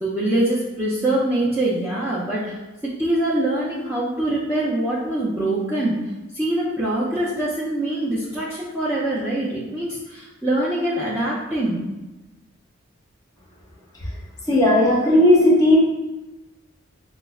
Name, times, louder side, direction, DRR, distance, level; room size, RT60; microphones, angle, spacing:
voice 1, 0.0-2.6 2.8-6.0 6.3-11.8, right 1 dB, 10° right, -9 dB, 0.4 m, -24 dB
voice 2, 14.5-15.8, left 1 dB, 15° left, -6 dB, 0.8 m, -15 dB
5.3 x 2.0 x 2.3 m, 1.1 s
head